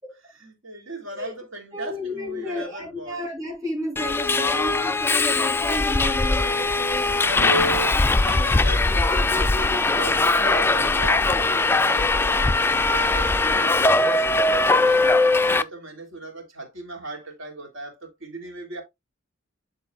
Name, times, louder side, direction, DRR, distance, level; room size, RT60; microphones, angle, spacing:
voice 1, 0.3-3.2 7.2-12.6 12.9-18.8, right 1 dB, 70° right, 3.1 m, -35 dB
voice 2, 1.7-7.7 8.3-8.7, equal, 20° right, 3.5 m, -32 dB
Subway metro underground, 4.0-15.6, left 3 dB, 10° left, 0.3 m, -20 dB
11.5 x 4.0 x 2.3 m
head